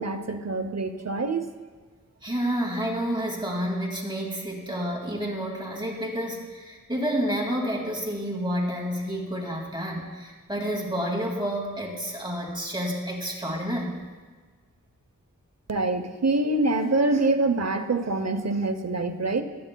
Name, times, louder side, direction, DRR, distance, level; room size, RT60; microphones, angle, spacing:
voice 1, 0.0-1.5 15.7-19.4, right 2 dB, 55° right, 7 dB, 0.8 m, -25 dB
voice 2, 2.2-14.0, equal, 15° right, -2 dB, 2.2 m, -29 dB
22.0 x 9.0 x 2.2 m, 1.5 s
wide cardioid pair, 75°, 32 cm